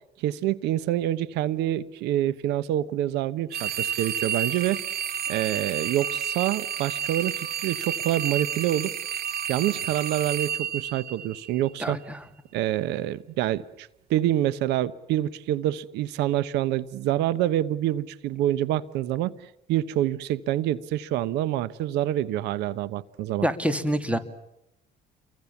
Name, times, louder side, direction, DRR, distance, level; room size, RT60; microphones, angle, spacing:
voice 1, 0.2-4.8 5.3-8.9 9.5-12.0 12.5-19.3 19.7-23.5, right 13 dB, 90° right, 17 dB, 1.0 m, -26 dB
sound 1, 3.5-11.7, right 9 dB, 65° right, 2.4 m, -31 dB
voice 2, 11.8-12.2 23.4-24.2, equal, 5° right, 10 dB, 2.6 m, -26 dB
29.5 x 23.5 x 7.1 m, 0.83 s
cardioid pair, 110°, 17 cm